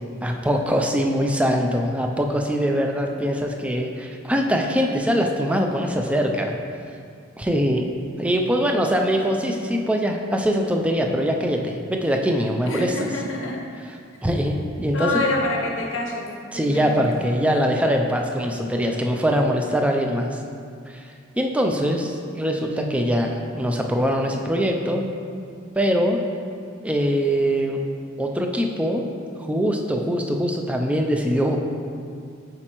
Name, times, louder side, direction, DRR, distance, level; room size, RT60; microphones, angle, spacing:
voice 1, 0.2-6.6 7.4-7.9 8.2-13.1 13.8-15.1 16.5-20.4 20.9-21.0 21.4-25.1 25.8-26.2 26.8-27.8 28.2-29.1 29.4-31.6, equal, 5° right, 2 dB, 0.4 m, -22 dB
voice 2, 12.7-13.7 14.9-16.3 16.5-17.2, left 2 dB, 80° left, 1 dB, 0.9 m, -27 dB
8.6 x 4.3 x 3.0 m, 2.4 s
head